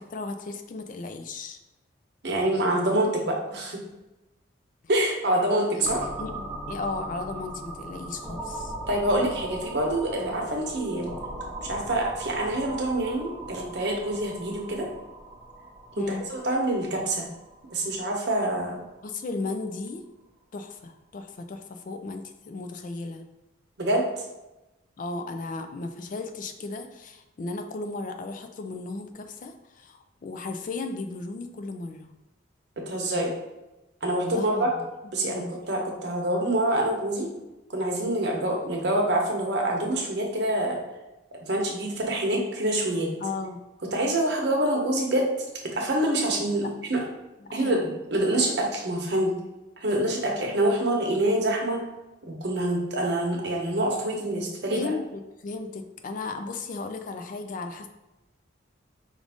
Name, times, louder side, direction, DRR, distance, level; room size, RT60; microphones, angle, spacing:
voice 1, 0.0-1.6 5.4-5.9 6.2-8.7 16.0-16.3 19.0-20.0 20.5-23.2 25.0-32.1 34.2-34.9 35.2-35.5 43.2-43.6 46.6-46.7 47.4-48.0 54.7-57.9, left 3 dB, 45° left, 7 dB, 0.3 m, -35 dB
voice 2, 2.2-3.8 4.9-6.1 8.9-11.1 11.6-14.9 16.0-17.2 17.7-18.8 23.8-24.0 32.9-33.3 34.0-34.7 35.1-37.3 37.7-40.8 41.5-43.1 43.9-45.3 45.6-47.0 47.5-49.3 49.8-51.8 52.3-54.9, right 1 dB, 60° right, 0 dB, 0.9 m, -26 dB
sound 1, 5.9-19.4, right 2 dB, 15° right, 0.6 m, -39 dB
5.0 x 2.5 x 3.5 m, 1.0 s
head